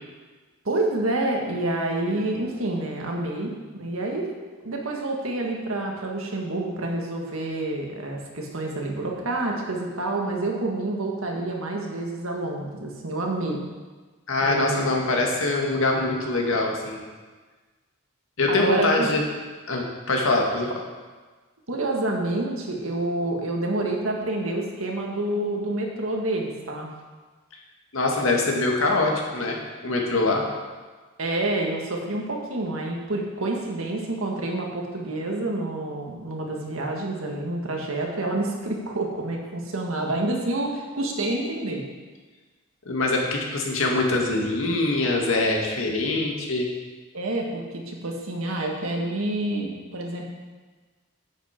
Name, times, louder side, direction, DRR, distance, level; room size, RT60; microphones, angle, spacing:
voice 1, 0.6-4.3 4.6-13.6 14.4-14.9 18.5-19.1 21.7-26.9 31.2-41.8 47.1-50.3, right 2 dB, 80° right, 0 dB, 1.7 m, -28 dB
voice 2, 14.3-17.0 18.4-19.2 19.7-20.7 27.9-29.6 29.8-30.4 42.9-46.7, left 2 dB, 75° left, 0 dB, 1.8 m, -23 dB
10.0 x 8.3 x 4.4 m, 1.3 s
head